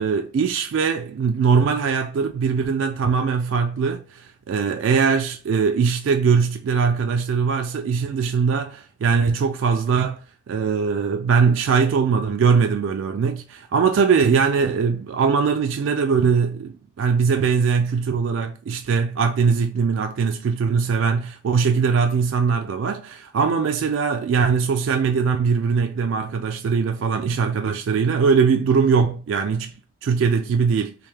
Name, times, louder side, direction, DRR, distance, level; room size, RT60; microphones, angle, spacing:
voice 1, 0.0-10.2 10.5-29.7 30.0-30.9, right 5 dB, 85° right, 0.3 m, -21 dB
3.4 x 2.6 x 3.3 m
head